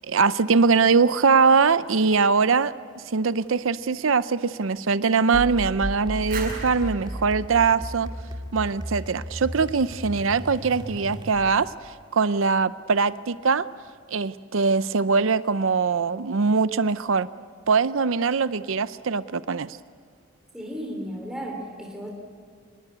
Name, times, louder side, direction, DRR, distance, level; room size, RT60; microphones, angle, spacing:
voice 1, 0.1-2.7 3.1-8.1 8.5-11.7 12.1-13.7 14.1-17.3 17.7-19.8, right 5 dB, 75° right, 14 dB, 0.6 m, -22 dB
sound 1, 5.3-11.7, equal, 20° right, 2.6 m, -35 dB
sound 2, 6.3-9.0, right 3 dB, 40° right, 5.9 m, -39 dB
voice 2, 20.5-22.1, equal, 5° right, 0 dB, 3.1 m, -34 dB
25.5 x 20.5 x 9.5 m, 2.1 s
head